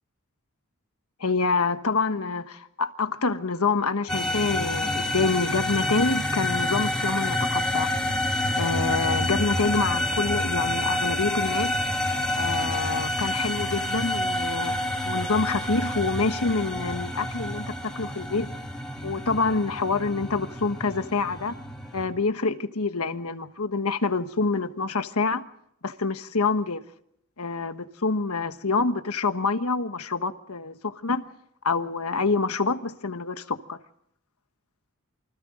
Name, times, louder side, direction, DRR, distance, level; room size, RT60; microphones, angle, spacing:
voice 1, 1.2-7.9 8.6-11.8 12.3-14.8 15.1-18.5 19.0-21.6 21.9-25.4 25.8-26.8 27.4-31.2 31.6-33.8, left 4 dB, 80° left, 1.3 m, -26 dB
sound 1, 4.1-22.1, left 1 dB, 5° left, 3.0 m, -28 dB
28.5 x 25.0 x 3.8 m
head